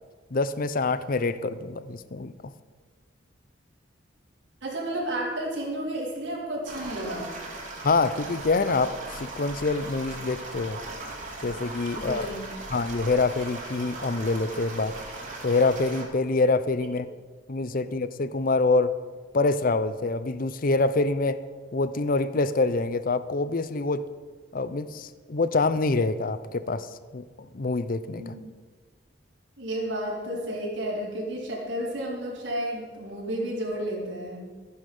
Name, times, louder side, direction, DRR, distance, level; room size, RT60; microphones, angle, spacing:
voice 1, 0.3-2.3 7.8-10.8 11.4-12.3 12.7-14.9 15.4-17.1 17.5-18.9 19.3-21.4 21.7-24.1 24.5-26.9 27.1-28.3, left 3 dB, 50° left, 14 dB, 0.6 m, -26 dB
voice 2, 4.6-7.3 11.9-12.4 28.2-28.5 29.6-34.4, right 1 dB, 80° right, -4 dB, 4.3 m, -32 dB
sound 1, 6.6-16.0, right 2 dB, 45° right, 2.8 m, -38 dB
14.0 x 10.5 x 5.5 m, 1.5 s
head